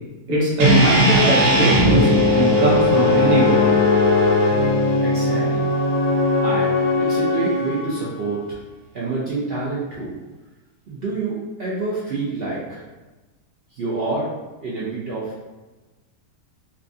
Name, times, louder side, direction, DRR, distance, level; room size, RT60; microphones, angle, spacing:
voice 1, 0.3-3.6, right 1 dB, 40° right, -6 dB, 1.0 m, -20 dB
sound 1, 0.6-4.8, right 2 dB, 70° right, 1.1 m, -20 dB
sound 2, 1.8-8.3, left 3 dB, 80° left, 1.2 m, -19 dB
voice 2, 5.0-5.7 6.4-6.7 7.0-8.6 8.9-10.1 10.9-12.8 13.7-14.3 14.6-15.4, right 3 dB, 85° right, -7 dB, 0.5 m, -27 dB
4.2 x 2.3 x 2.6 m, 1.2 s
omnidirectional pair, 1.8 m